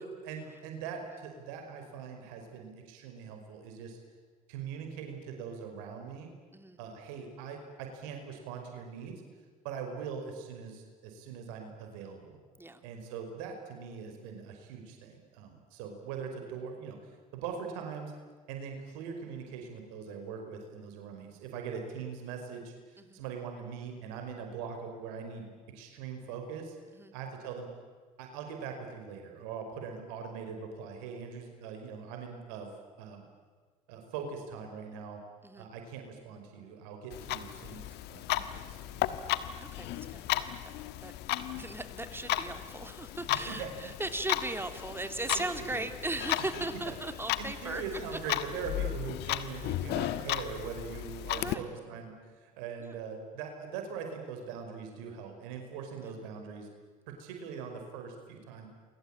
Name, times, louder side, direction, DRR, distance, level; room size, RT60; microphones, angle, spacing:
voice 1, 0.0-4.0 4.5-6.3 6.8-9.2 9.6-12.4 12.8-17.0 17.3-18.1 18.5-26.8 27.1-27.7 28.2-32.7 33.0-33.3 33.9-35.2 35.6-39.3 43.4-43.7 45.3-45.4 45.7-45.9 46.9-47.0 47.4-52.2 52.4-56.7 57.1-58.7, right 6 dB, 75° right, 4 dB, 5.1 m, -41 dB
Clock, 37.1-51.5, left 14 dB, 65° left, 1.4 m, -35 dB
voice 2, 39.6-40.6 41.0-48.2 49.5-49.7 51.3-51.6 52.8-52.9 56.0-56.1, right 2 dB, 10° right, 8 dB, 3.2 m, -38 dB
29.0 x 23.0 x 9.0 m, 1.5 s
hypercardioid pair, 65°, 18 cm